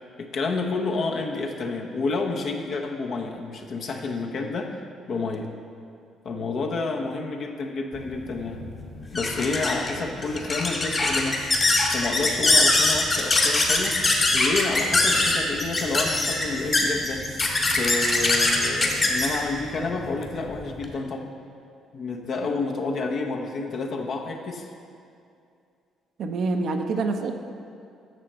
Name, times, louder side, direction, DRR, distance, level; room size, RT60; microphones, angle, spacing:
voice 1, 0.2-4.8 5.1-5.5 6.2-8.6 9.1-11.4 11.9-14.0 14.3-17.2 17.7-21.3 21.9-24.7, left 3 dB, 60° left, 1 dB, 1.0 m, -29 dB
sound 1, 8.0-20.9, left 2 dB, 40° left, 1.7 m, -23 dB
voice 2, 26.2-27.4, right 3 dB, 65° right, 5 dB, 0.7 m, -26 dB
9.5 x 6.6 x 4.3 m, 2.4 s
supercardioid pair, 60°, 0 cm